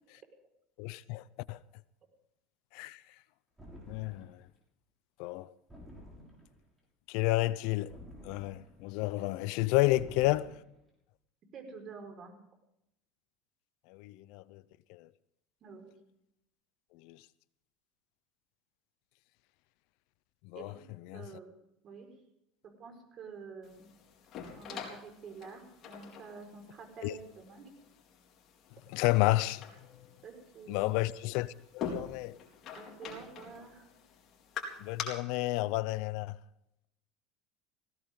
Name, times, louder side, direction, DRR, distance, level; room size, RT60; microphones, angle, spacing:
voice 1, 0.8-1.6 2.7-3.0 3.9-4.4 5.2-5.5 7.1-7.9 8.2-10.5 13.9-14.6 14.9-15.1 17.0-17.2 20.4-20.7 21.1-21.2 27.0-27.1 28.9-29.6 30.7-32.4 34.8-36.4, left 19 dB, 65° left, 0.6 m, -31 dB
sound 1, 3.6-4.5 5.7-6.7 7.9-8.9 9.9-10.8, equal, 10° right, 6.3 m, -51 dB
voice 2, 11.5-12.3 15.6-15.9 20.5-20.8 21.1-22.1 22.6-23.9 24.6-27.7 30.2-30.9 32.7-33.9, right 5 dB, 40° right, 5.1 m, -48 dB
sound 2, 23.6-35.0, left 7 dB, 40° left, 4.1 m, -45 dB
19.5 x 17.0 x 3.9 m
supercardioid pair, 125°, 0 cm